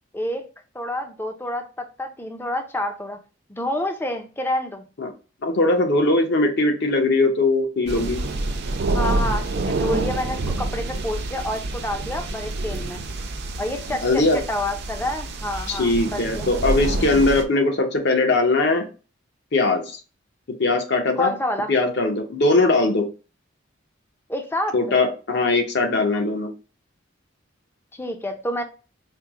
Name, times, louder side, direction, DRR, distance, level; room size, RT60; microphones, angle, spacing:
voice 1, 0.1-0.5 0.7-3.2 3.5-4.8 8.9-13.0 13.6-16.5 21.2-21.7 24.3-24.8 27.9-28.6, left 1 dB, 10° left, 0.4 m, -28 dB
voice 2, 5.4-8.2 14.0-14.4 15.7-18.9 19.5-20.0 20.6-21.3 21.7-23.1 24.7-26.5, left 2 dB, 55° left, 0.8 m, -20 dB
sound 1, 7.9-17.4, right 2 dB, 55° right, 0.5 m, -27 dB
4.4 x 2.0 x 3.5 m
head